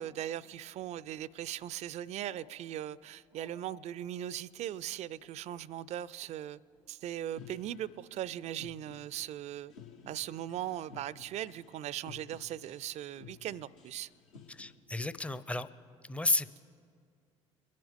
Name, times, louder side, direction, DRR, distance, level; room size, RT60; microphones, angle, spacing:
voice 1, 0.0-6.6 6.9-9.7 10.1-14.1, right 12 dB, 45° right, 22 dB, 0.4 m, -39 dB
sound 1, 0.8-14.7, left 6 dB, 75° left, 1.3 m, -57 dB
voice 2, 14.5-15.7 16.0-16.6, left 2 dB, 10° left, 14 dB, 0.6 m, -32 dB
23.0 x 10.5 x 3.6 m, 2.2 s
figure-of-eight pair, 60°, 16 cm